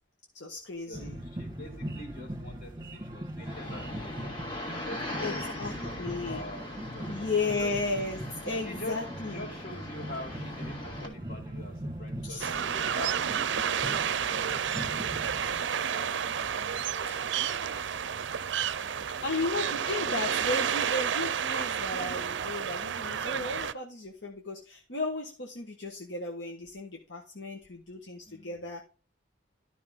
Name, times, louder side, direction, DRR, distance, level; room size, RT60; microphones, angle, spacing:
voice 1, 0.3-1.2 5.2-5.3 5.6-5.7 6.0-6.4 7.1-9.4 12.2-12.5 17.1-17.3 19.2-28.8, left 2 dB, 70° left, 1 dB, 1.4 m, -34 dB
voice 2, 0.9-4.2 4.8-7.7 8.5-14.7 15.4-17.8 18.7-19.4 28.2-28.7, left 1 dB, 45° left, 2 dB, 3.1 m, -45 dB
sound 1, 0.9-15.6, right 1 dB, 20° right, 1.5 m, -40 dB
sound 2, 3.4-11.1, left 1 dB, 25° left, 2.0 m, -40 dB
sound 3, 12.4-23.7, right 8 dB, 70° right, 0.5 m, -31 dB
12.0 x 5.7 x 3.7 m, 0.34 s
head